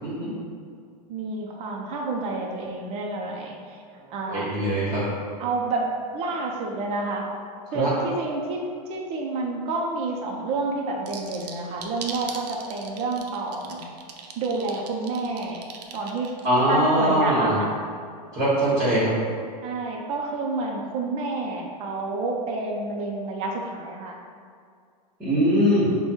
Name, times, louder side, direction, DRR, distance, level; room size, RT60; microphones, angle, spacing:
voice 1, 1.1-3.8 4.1-4.5 5.4-7.3 7.7-8.6 8.9-13.8 14.4-15.6 15.9-16.3 16.7-17.7 19.6-24.1, right 3 dB, 30° right, 0 dB, 0.5 m, -29 dB
voice 2, 4.3-5.0 7.7-8.0 16.4-17.6 18.3-19.1 25.2-25.9, equal, 15° right, -9 dB, 1.2 m, -21 dB
sound 1, 11.1-16.6, right 7 dB, 70° right, 0.6 m, -39 dB
4.9 x 2.2 x 4.4 m, 2.2 s
supercardioid pair, 150°, 21 cm